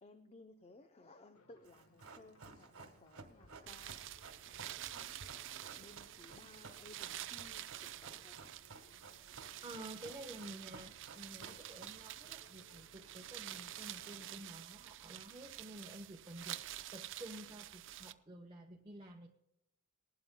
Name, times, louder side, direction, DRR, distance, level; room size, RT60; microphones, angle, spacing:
voice 1, 0.0-8.4, left 2 dB, 30° left, 7 dB, 0.6 m, -60 dB
sound 1, 1.3-14.6, left 2 dB, 75° left, 1.3 m, -67 dB
Run, 1.6-12.3 12.5-12.6, right 4 dB, 75° right, 1.4 m, -55 dB
sound 2, 3.7-18.1, right 12 dB, 60° right, 0.5 m, -48 dB
voice 2, 9.6-19.3, right 1 dB, 20° right, 0 dB, 0.9 m, -51 dB
20.0 x 12.0 x 2.2 m, 0.83 s
head